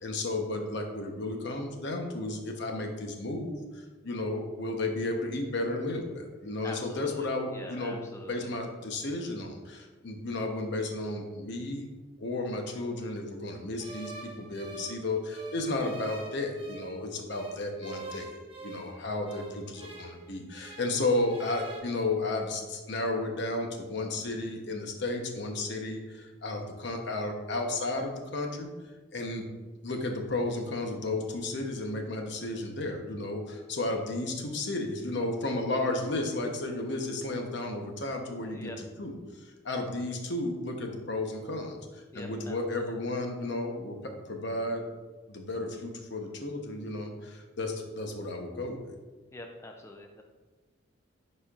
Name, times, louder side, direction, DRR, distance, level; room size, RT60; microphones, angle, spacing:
voice 1, 0.0-8.0 8.3-11.9 12.2-18.3 18.6-28.7 29.1-29.5 29.8-39.1 39.6-44.8 45.3-48.9, left 2 dB, 65° left, 3 dB, 0.9 m, -33 dB
voice 2, 6.6-8.5 38.5-38.8 42.1-43.0 49.3-50.2, left 2 dB, 15° left, 3 dB, 0.4 m, -45 dB
sound 1, 13.8-17.0 17.3-21.0 21.2-21.8, right 3 dB, 30° right, 1.0 m, -46 dB
10.0 x 4.3 x 2.4 m, 1.3 s
head